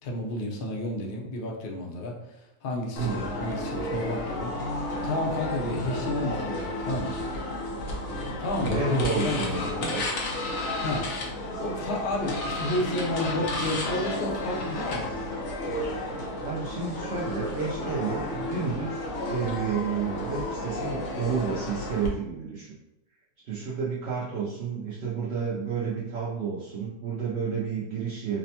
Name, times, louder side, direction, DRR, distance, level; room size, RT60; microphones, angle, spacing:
voice 1, 0.0-2.2 2.6-7.2 8.4-9.9 10.8-11.3 11.6-15.3, left 1 dB, 80° left, -1 dB, 0.5 m, -31 dB
sound 1, 3.0-22.1, left 1 dB, 55° left, 0.9 m, -32 dB
voice 2, 3.0-3.3 8.7-10.1 16.4-19.0 19.3-22.8 23.4-28.4, right 5 dB, 80° right, -6 dB, 0.5 m, -31 dB
5.0 x 2.2 x 2.8 m, 0.91 s
omnidirectional pair, 1.9 m